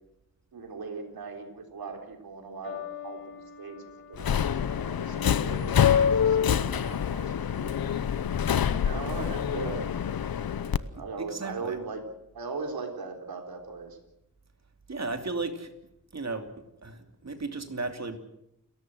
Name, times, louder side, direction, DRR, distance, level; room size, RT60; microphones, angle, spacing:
voice 1, 0.5-9.8 10.6-12.0 12.3-14.0, right 4 dB, 90° right, 4 dB, 3.8 m, -40 dB
sound 1, 2.6-9.2 10.0-10.4, left 7 dB, 35° left, 4.8 m, -48 dB
Subway metro underground, 4.2-10.8, left 8 dB, 80° left, 0.9 m, -26 dB
voice 2, 10.9-11.8 14.9-15.7 16.1-18.2, right 3 dB, 50° right, 6 dB, 2.9 m, -35 dB
29.5 x 13.5 x 7.8 m, 0.83 s
wide cardioid pair, 75°, 35 cm